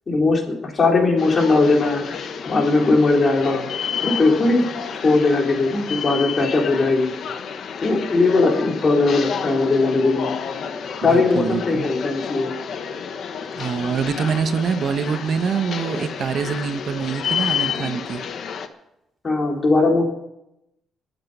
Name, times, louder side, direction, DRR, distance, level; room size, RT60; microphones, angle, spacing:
voice 1, 0.1-3.6 4.0-4.6 5.0-7.1 7.8-10.3 11.0-12.5 19.2-20.0, left 3 dB, 35° left, 1 dB, 4.0 m, -19 dB
sound 1, 1.2-18.7, left 7 dB, 60° left, 1.3 m, -30 dB
voice 2, 11.0-11.9 13.6-18.2, right 6 dB, 55° right, 9 dB, 1.1 m, -25 dB
22.5 x 8.2 x 5.6 m, 0.86 s
cardioid pair, 90°, 0 cm